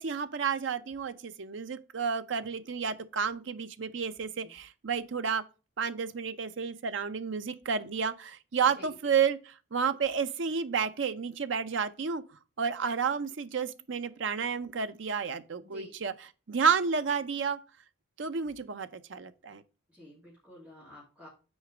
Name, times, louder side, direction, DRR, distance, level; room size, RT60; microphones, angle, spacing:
voice 1, 0.0-5.4 5.8-12.2 12.6-16.1 16.5-17.6 18.2-19.6, right 6 dB, 70° right, 0.6 m, -31 dB
voice 2, 8.6-9.1 15.6-15.9 19.9-21.3, left 1 dB, 5° right, 2.3 m, -50 dB
6.3 x 4.2 x 4.8 m
head